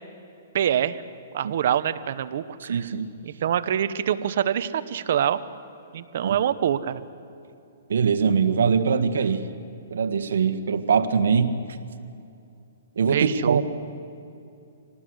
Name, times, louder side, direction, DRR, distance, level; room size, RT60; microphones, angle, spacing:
voice 1, 0.5-1.0 1.3-2.9 3.2-5.4 5.9-7.0 13.1-13.6, right 9 dB, 55° right, 12 dB, 1.0 m, -25 dB
voice 2, 2.6-3.1 6.2-6.3 7.9-9.4 9.9-11.5 13.0-13.6, right 6 dB, 80° right, 8 dB, 1.7 m, -22 dB
26.5 x 19.0 x 8.0 m, 2.6 s
hypercardioid pair, 155°, 0 cm